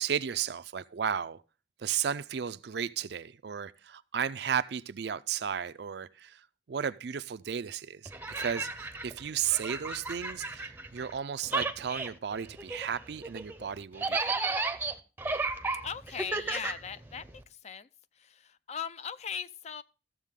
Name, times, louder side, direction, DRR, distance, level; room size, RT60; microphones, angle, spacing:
voice 1, 0.0-1.4 1.8-14.6, right 8 dB, 65° right, 0.4 m, -34 dB
sound 1, 8.1-11.2 11.4-17.4, right 3 dB, 10° right, 0.6 m, -34 dB
voice 2, 15.8-17.2 17.6-17.9 18.2-19.8, left 7 dB, 35° left, 0.4 m, -38 dB
13.5 x 7.4 x 3.6 m
head